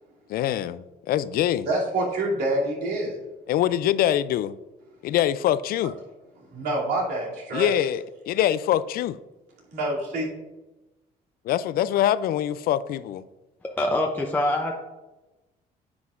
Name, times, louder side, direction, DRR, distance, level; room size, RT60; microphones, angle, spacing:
voice 1, 0.3-1.7 3.5-4.6 5.0-5.9 7.5-9.2 11.4-13.2, left 11 dB, 60° left, 0.4 m, -24 dB
voice 2, 1.6-3.2 6.5-7.8 9.7-10.3, right 1 dB, 80° right, 2.7 m, -26 dB
voice 3, 13.6-14.7, left 1 dB, 10° left, 0.7 m, -25 dB
9.5 x 7.8 x 2.5 m
cardioid pair, 110°, 17 cm